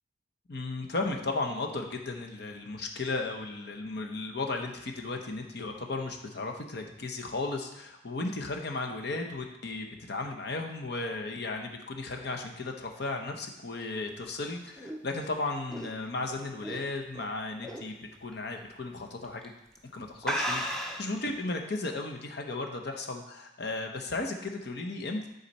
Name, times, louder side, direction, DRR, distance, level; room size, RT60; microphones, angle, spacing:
voice 1, 0.5-19.5 19.9-25.3, left 3 dB, 60° left, 3 dB, 0.9 m, -35 dB
sound 1, 14.1-17.2 17.6-17.9 18.3-18.4 19.2-19.5 19.8-19.9 20.2-21.2, equal, 5° left, 0.7 m, -34 dB
10.0 x 4.1 x 4.2 m, 0.89 s
head